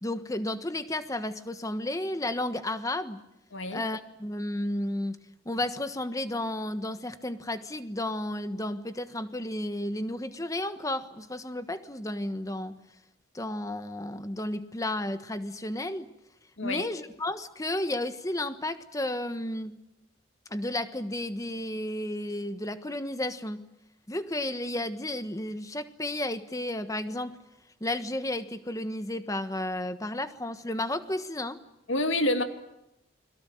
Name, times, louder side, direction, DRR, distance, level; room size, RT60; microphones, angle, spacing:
voice 1, 0.0-3.2 3.7-5.2 5.4-12.8 13.3-16.1 16.6-19.8 20.5-23.6 24.1-27.4 27.8-31.6, left 1 dB, 15° left, 10 dB, 1.3 m, -32 dB
voice 2, 31.9-32.4, left 1 dB, 75° left, 7 dB, 2.3 m, -27 dB
30.0 x 22.5 x 7.8 m, 0.88 s
head